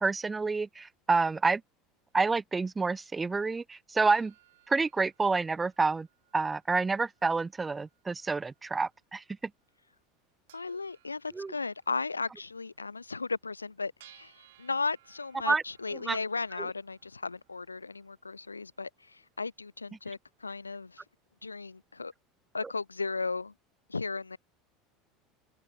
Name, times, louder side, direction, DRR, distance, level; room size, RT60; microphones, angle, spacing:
voice 1, 0.0-1.6 2.1-4.3 4.7-6.1 6.3-9.2 11.4-11.5 15.4-15.6 16.1-16.2, right 4 dB, 15° right, 0.4 m, -28 dB
sound 1, 4.1-22.0, right 15 dB, 65° right, 4.5 m, -65 dB
voice 2, 10.5-21.0 21.4-22.1 22.5-23.5 23.9-24.4, left 4 dB, 85° left, 1.3 m, -36 dB
figure-of-eight pair, 70°, 0 cm